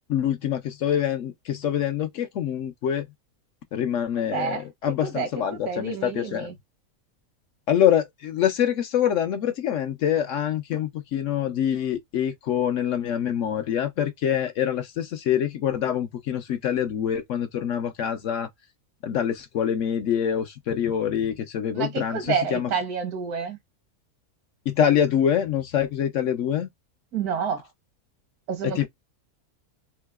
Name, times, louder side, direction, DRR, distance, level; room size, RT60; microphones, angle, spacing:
voice 1, 0.1-3.1 3.7-6.5 7.7-18.5 19.0-22.7 24.7-26.7 28.6-28.9, left 9 dB, 65° left, 0.9 m, -25 dB
voice 2, 4.2-6.5 21.7-23.6 27.1-27.6 28.5-28.9, right 6 dB, 80° right, 1.5 m, -29 dB
3.8 x 2.7 x 2.2 m
omnidirectional pair, 1.6 m